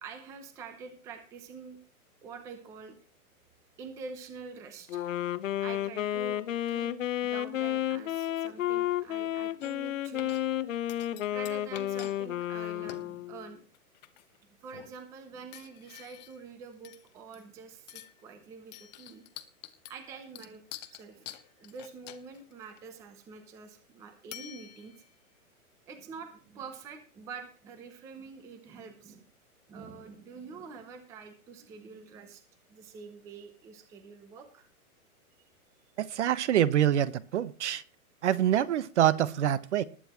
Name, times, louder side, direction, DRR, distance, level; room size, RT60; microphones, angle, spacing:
voice 1, 0.0-1.8 2.2-2.9 3.8-5.0 5.6-10.4 11.1-13.6 14.5-19.2 19.9-20.6 20.9-25.0 25.9-29.3 29.7-32.4 32.7-34.7, right 5 dB, 5° right, 8 dB, 0.7 m, -46 dB
Wind instrument woodwind instrument, 4.9-13.5, left 12 dB, 60° left, 1.0 m, -32 dB
sound 1, 9.6-9.9 10.2-10.6 10.9-12.2 12.4-12.5 12.9-13.1 13.7-14.4 14.7-15.0 15.5-16.5 16.8-17.5 17.9-18.2 18.7-22.8 24.3-25.2, left 13 dB, 30° left, 0.9 m, -48 dB
voice 2, 36.0-37.8 38.2-39.8, right 11 dB, 50° right, 17 dB, 1.0 m, -26 dB
20.0 x 9.7 x 3.0 m, 0.40 s
hypercardioid pair, 160°, 44 cm